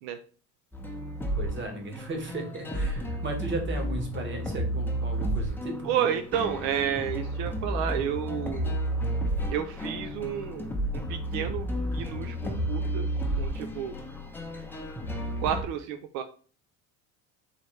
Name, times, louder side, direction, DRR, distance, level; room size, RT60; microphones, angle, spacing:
sound 1, 0.7-15.6, equal, 5° left, 0.7 m, -32 dB
voice 1, 1.4-5.9, right 3 dB, 30° right, 3 dB, 1.3 m, -35 dB
voice 2, 5.8-8.8 9.5-13.1 13.4-14.0 15.4-16.2, right 9 dB, 80° right, 8 dB, 0.5 m, -31 dB
4.1 x 3.1 x 3.1 m, 0.40 s
supercardioid pair, 110°, 36 cm